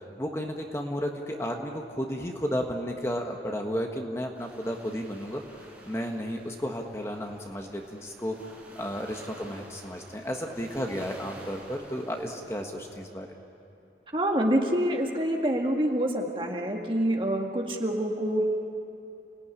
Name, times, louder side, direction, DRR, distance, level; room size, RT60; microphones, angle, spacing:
voice 1, 0.2-5.4 5.8-8.4 8.7-13.3, equal, 15° left, 2 dB, 1.5 m, -33 dB
sound 1, 4.3-13.1, right 1 dB, 10° right, 5.0 m, -50 dB
voice 2, 14.1-18.5, right 1 dB, 30° right, 1 dB, 2.0 m, -26 dB
29.5 x 18.5 x 9.8 m, 2.7 s
head